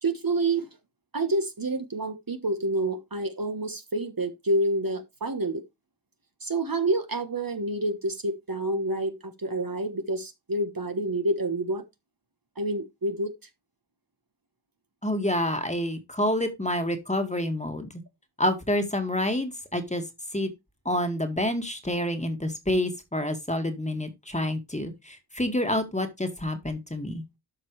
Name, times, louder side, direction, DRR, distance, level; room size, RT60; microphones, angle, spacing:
voice 1, 0.0-0.7 1.1-5.6 6.4-11.8 12.6-13.3, right 2 dB, 45° right, 1.4 m, -28 dB
voice 2, 15.0-17.9 18.4-20.0 20.3-20.5 20.9-27.2, left 1 dB, 15° left, 1.9 m, -28 dB
12.0 x 5.3 x 3.2 m
wide cardioid pair, 50°, 48 cm